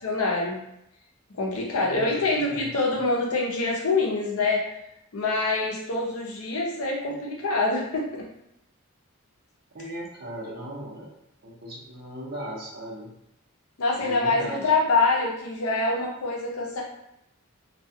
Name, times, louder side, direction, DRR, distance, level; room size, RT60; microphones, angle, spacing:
voice 1, 0.0-0.6 1.3-4.6 5.1-8.2 13.8-16.8, left 3 dB, 75° left, -2 dB, 0.6 m, -25 dB
voice 2, 1.8-2.8 7.0-7.1 9.7-11.1 11.4-13.1 14.0-14.7, right 1 dB, 45° right, -5 dB, 0.7 m, -38 dB
2.3 x 2.3 x 2.6 m, 0.79 s
head